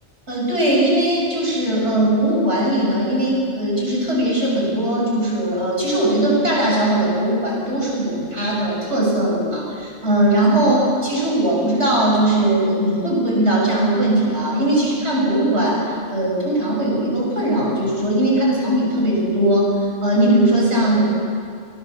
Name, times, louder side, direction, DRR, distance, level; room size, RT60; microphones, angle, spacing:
voice 1, 0.3-21.0, right 1 dB, 65° right, -3 dB, 6.9 m, -19 dB
23.5 x 18.5 x 7.3 m, 2.2 s
omnidirectional pair, 1.3 m